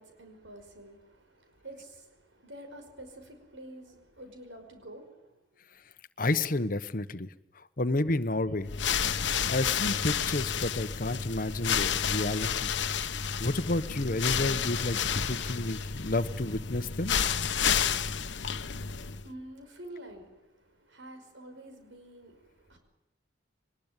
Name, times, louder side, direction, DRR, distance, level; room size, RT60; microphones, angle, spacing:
voice 1, 0.0-5.3 18.4-22.8, right 1 dB, 85° right, 5 dB, 5.4 m, -48 dB
voice 2, 6.2-7.3 7.8-8.7 9.5-12.7 13.4-15.0 15.3-17.2, left 2 dB, 50° left, 10 dB, 1.1 m, -30 dB
sound 1, 8.6-19.3, left 7 dB, 75° left, 1.1 m, -30 dB
22.5 x 20.5 x 9.0 m, 0.88 s
head